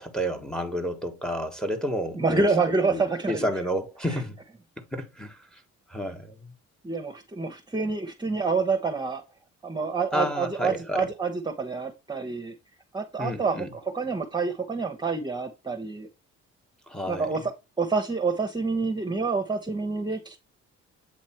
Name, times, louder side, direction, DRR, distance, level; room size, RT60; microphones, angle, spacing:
voice 1, 0.0-2.5 2.9-4.4 4.8-5.6 5.9-6.5 10.1-11.1 13.2-13.7 16.9-17.4, equal, ahead, 1.4 m, -31 dB
voice 2, 2.1-3.4 6.8-9.2 9.6-12.5 12.9-13.6 13.9-16.1 17.1-17.4 17.8-20.4, right 4 dB, 15° right, 1.0 m, -27 dB
8.4 x 3.0 x 4.4 m
cardioid pair, 90°, 30 cm